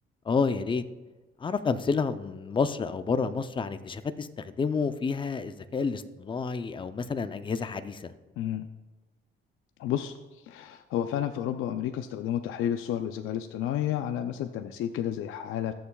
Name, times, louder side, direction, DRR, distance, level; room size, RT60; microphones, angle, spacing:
voice 1, 0.3-0.8 1.4-4.3 4.6-8.0, left 5 dB, 25° left, 11 dB, 0.5 m, -29 dB
voice 2, 8.4-8.7 9.8-15.7, left 10 dB, 75° left, 8 dB, 0.5 m, -31 dB
20.5 x 7.0 x 2.3 m, 1.2 s
cardioid pair, 100°, 21 cm